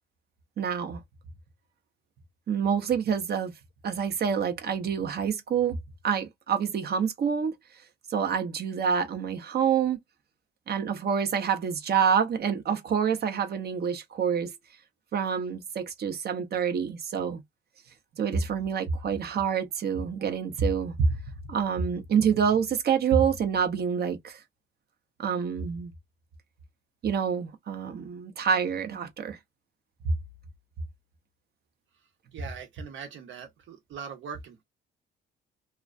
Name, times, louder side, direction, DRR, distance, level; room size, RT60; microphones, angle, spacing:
voice 1, 0.6-1.0 2.5-3.5 3.8-5.7 6.0-7.5 8.1-10.0 10.7-14.5 15.1-17.4 18.2-21.2 21.5-24.4 25.2-25.9 27.0-29.4, right 7 dB, 55° right, 0.7 m, -27 dB
voice 2, 32.3-34.6, right 7 dB, 75° right, 1.0 m, -41 dB
2.3 x 2.2 x 2.4 m
cardioid pair, 90°, 20 cm